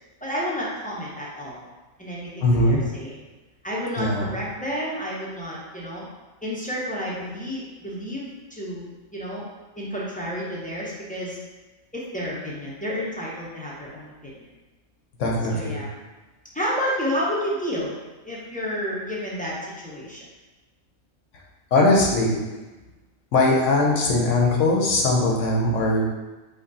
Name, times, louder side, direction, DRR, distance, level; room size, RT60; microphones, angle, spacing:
voice 1, 0.2-1.6 2.0-3.2 3.6-6.1 6.4-9.4 9.8-11.4 11.9-14.5 15.5-15.9 16.5-18.0 18.2-20.3, equal, 10° left, -6 dB, 0.6 m, -30 dB
voice 2, 2.4-2.8 4.0-4.3 15.2-15.8 21.7-22.4 23.3-26.0, left 2 dB, 65° left, -2 dB, 1.0 m, -20 dB
5.3 x 2.4 x 3.9 m, 1.2 s
omnidirectional pair, 1.5 m